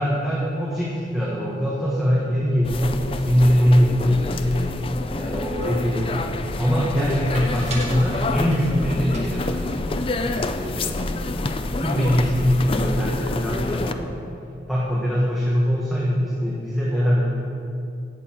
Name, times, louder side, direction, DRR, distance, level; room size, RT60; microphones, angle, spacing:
voice 1, 0.0-4.8 5.2-6.3 6.6-11.3 11.7-14.2 14.7-17.2, equal, ahead, -8 dB, 1.5 m, -22 dB
sound 1, 2.6-13.9, left 2 dB, 30° left, 0.4 m, -28 dB
sound 2, 5.6-6.2 7.3-8.8 9.1-10.9 11.2-11.3 11.6-12.1, right 2 dB, 40° right, 1.5 m, -39 dB
16.5 x 6.9 x 4.5 m, 2.5 s
head